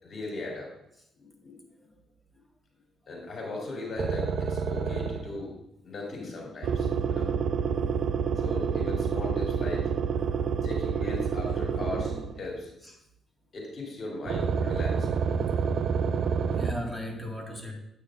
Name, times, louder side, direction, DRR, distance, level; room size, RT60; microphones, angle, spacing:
voice 1, 0.0-0.7 1.2-1.6 3.1-5.5 5.8-7.9 8.4-9.9 10.5-12.7 13.5-15.1, left 2 dB, 50° left, -1 dB, 3.6 m, -38 dB
sound 1, 4.0-5.4 6.6-12.4 14.3-16.7, right 6 dB, 65° right, 0.5 m, -28 dB
voice 2, 8.2-9.1 9.7-10.6 11.4-12.2 12.8-13.0 14.0-14.3 14.7-14.8 16.3-17.7, equal, ahead, -1 dB, 2.0 m, -41 dB
9.4 x 9.0 x 2.6 m, 0.80 s
cardioid pair, 90°, 0 cm